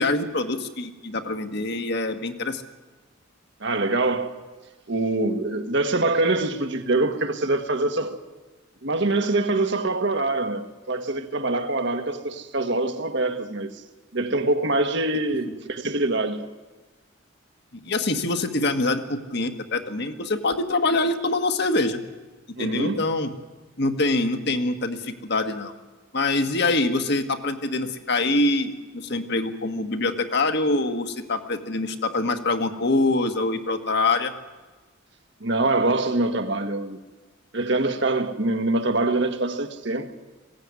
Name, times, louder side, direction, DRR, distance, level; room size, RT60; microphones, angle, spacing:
voice 1, 0.0-2.6 17.7-22.0 22.6-23.3 23.8-25.7 26.1-34.3, left 2 dB, 55° left, 1.5 m, -24 dB
voice 2, 3.6-4.4 4.9-8.2 8.8-13.8 14.1-16.5 22.6-23.0 35.4-37.0 37.5-40.1, right 2 dB, 60° right, 1.6 m, -24 dB
21.0 x 16.5 x 9.7 m
head